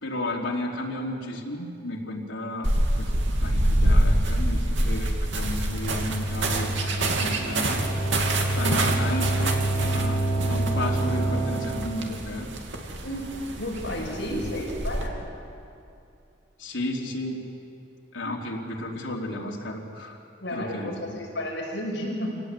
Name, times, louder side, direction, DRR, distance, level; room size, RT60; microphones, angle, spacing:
voice 1, 0.0-3.1 3.4-7.8 8.2-9.6 9.9-12.5 14.3-14.7 16.6-17.4 18.1-20.2 20.5-21.2, left 1 dB, 80° left, -1 dB, 3.6 m, -33 dB
sound 1, 2.6-15.1, right 1 dB, 70° right, 2.7 m, -27 dB
sound 2, 5.2-12.0, right 1 dB, 25° left, 7.3 m, -27 dB
voice 2, 13.6-15.2 20.4-22.4, left 1 dB, 65° left, -1 dB, 6.1 m, -32 dB
26.5 x 18.0 x 8.4 m, 2.5 s
head